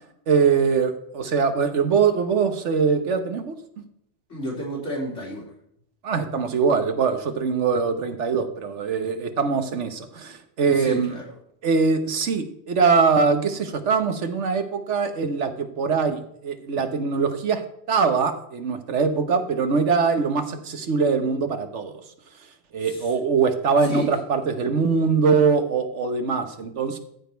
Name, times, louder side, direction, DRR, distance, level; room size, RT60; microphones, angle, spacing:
voice 1, 0.3-3.5 6.0-11.1 11.6-17.6 17.9-22.0 22.7-27.0, right 5 dB, 80° right, 8 dB, 1.4 m, -22 dB
voice 2, 4.3-5.5 10.7-11.2 22.8-23.1 23.8-24.1, equal, 85° left, -3 dB, 3.6 m, -32 dB
14.0 x 5.1 x 4.5 m, 0.73 s
omnidirectional pair, 1.2 m